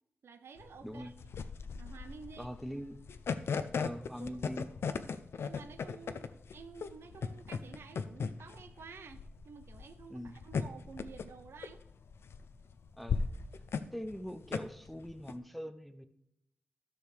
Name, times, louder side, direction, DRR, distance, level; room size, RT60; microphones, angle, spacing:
voice 1, 0.2-1.1 1.8-2.5 4.2-4.3 5.4-11.8, right 5 dB, 80° right, 9 dB, 0.6 m, -51 dB
sound 1, 0.6-15.3, left 5 dB, 85° left, 0.4 m, -38 dB
voice 2, 0.8-1.1 2.4-3.0 3.8-4.7 10.1-10.4 13.0-13.3 13.9-16.0, equal, ahead, 9 dB, 0.5 m, -42 dB
13.0 x 6.5 x 3.3 m, 0.76 s
wide cardioid pair, 170°, 4 cm